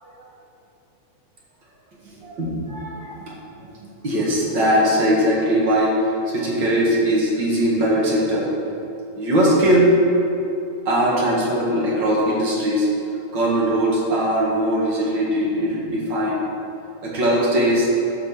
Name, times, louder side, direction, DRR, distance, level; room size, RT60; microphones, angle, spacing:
voice 1, 2.2-3.3 4.0-5.9 6.3-8.5 9.2-10.0 10.9-12.9 13.3-16.5 17.0-17.9, equal, 40° right, -4 dB, 2.3 m, -20 dB
12.0 x 5.3 x 6.7 m, 2.9 s
omnidirectional pair, 3.4 m